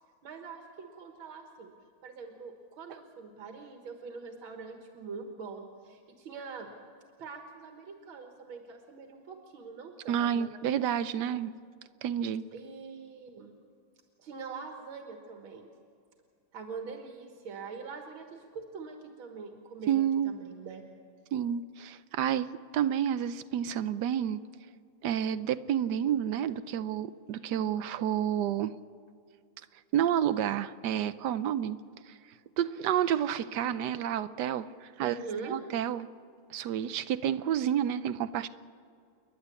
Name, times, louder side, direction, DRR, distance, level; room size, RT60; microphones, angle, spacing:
voice 1, 0.2-1.7 2.0-6.7 7.2-10.5 12.5-13.5 14.2-15.7 16.5-20.9 35.0-35.6, right 5 dB, 90° right, 3 dB, 2.3 m, -43 dB
voice 2, 10.1-11.5 12.0-12.4 19.9-20.3 21.3-24.4 25.0-28.7 29.9-31.8 32.1-32.2 32.6-35.2 35.4-36.1 36.5-38.5, right 10 dB, 65° right, 13 dB, 1.2 m, -30 dB
29.5 x 11.0 x 8.4 m, 2.3 s
omnidirectional pair, 2.2 m